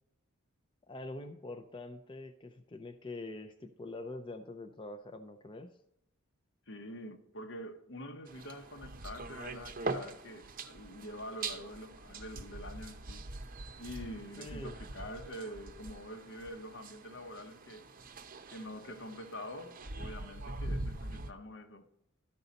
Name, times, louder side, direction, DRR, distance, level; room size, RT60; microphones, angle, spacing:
voice 1, 0.9-5.7 14.4-14.8, left 2 dB, 25° left, 0.5 m, -44 dB
voice 2, 6.7-13.3 13.8-17.9 18.5-21.9, equal, 60° left, 1.0 m, -46 dB
sound 1, 8.3-21.3, right 2 dB, 45° right, 0.7 m, -43 dB
13.0 x 5.5 x 4.0 m
head